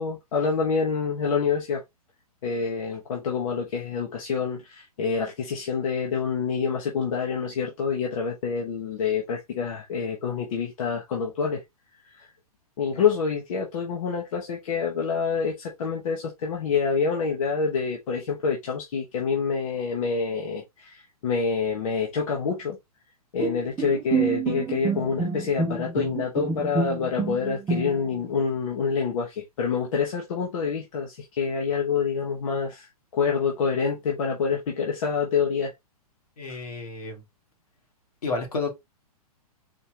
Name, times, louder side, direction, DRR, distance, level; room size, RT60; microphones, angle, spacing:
voice 1, 0.0-1.8 2.4-11.6 12.1-12.3 12.8-22.8 23.3-32.9 33.1-35.7 36.5-36.6, left 5 dB, 60° left, 1.2 m, -27 dB
Bowed string instrument, 23.4-28.2, right 5 dB, 10° right, 0.7 m, -28 dB
voice 2, 36.4-37.2 38.2-38.7, left 3 dB, 80° left, 2.2 m, -30 dB
4.3 x 3.1 x 2.9 m
hypercardioid pair, 120°, 19 cm